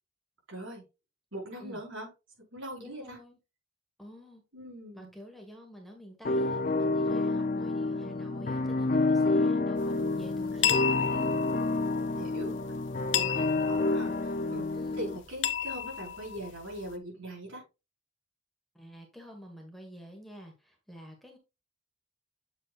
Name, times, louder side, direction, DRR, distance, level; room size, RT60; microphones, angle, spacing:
voice 1, 0.5-0.8 1.3-2.1 2.5-3.2 4.5-5.1 10.5-11.4 12.1-12.6 13.0-17.6, right 1 dB, 80° right, -3 dB, 5.1 m, -42 dB
voice 2, 2.8-3.4 4.0-4.4 4.9-11.3 12.0-12.4 14.7-15.1 18.7-21.4, equal, ahead, 1 dB, 1.5 m, -48 dB
sound 1, 6.2-15.2, left 2 dB, 40° left, 0.5 m, -29 dB
sound 2, 9.8-17.0, left 10 dB, 70° left, 0.8 m, -34 dB
7.8 x 7.4 x 2.5 m, 0.27 s
head